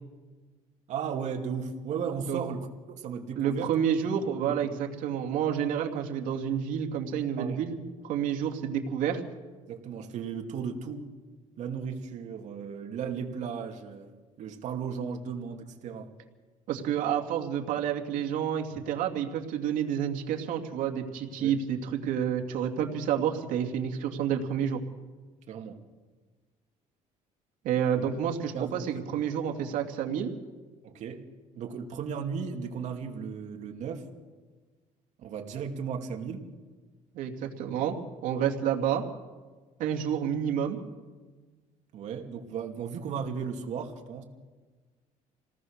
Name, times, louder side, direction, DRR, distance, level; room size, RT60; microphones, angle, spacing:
voice 1, 0.9-3.7 4.4-4.7 7.4-7.7 9.7-11.1 11.6-14.1 14.4-16.1 21.4-21.5 25.5-25.8 28.5-28.9 30.8-31.2 31.5-34.1 35.2-36.5 41.9-44.2, right 6 dB, 60° right, 3 dB, 2.6 m, -35 dB
voice 2, 3.4-9.2 16.7-24.8 27.6-30.3 37.1-37.9 38.2-39.0 39.8-40.8, right 8 dB, 85° right, 2 dB, 2.6 m, -29 dB
28.0 x 19.0 x 6.6 m, 1.4 s
cardioid pair, 145°, 13 cm